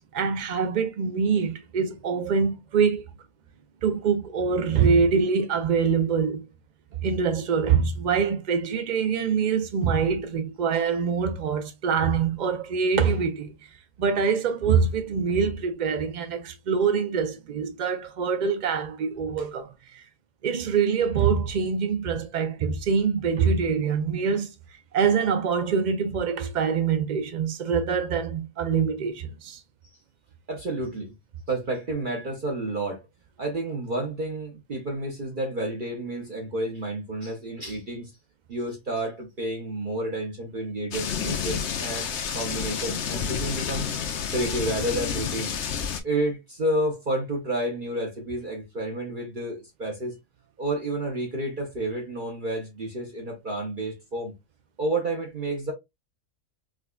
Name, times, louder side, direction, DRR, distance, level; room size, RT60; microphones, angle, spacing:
voice 1, 0.1-3.0 3.8-6.4 7.0-13.5 14.0-20.0 20.4-24.5 24.9-29.6, right 6 dB, 75° right, 0.4 m, -24 dB
voice 2, 30.5-31.1 31.5-33.0 33.4-38.1 38.5-43.9 44.3-45.5 46.0-50.2 50.6-54.3 54.8-55.7, right 1 dB, 45° right, 0.8 m, -30 dB
sound 1, 40.9-46.0, left 7 dB, 60° left, 0.9 m, -30 dB
4.8 x 2.3 x 2.2 m
omnidirectional pair, 1.4 m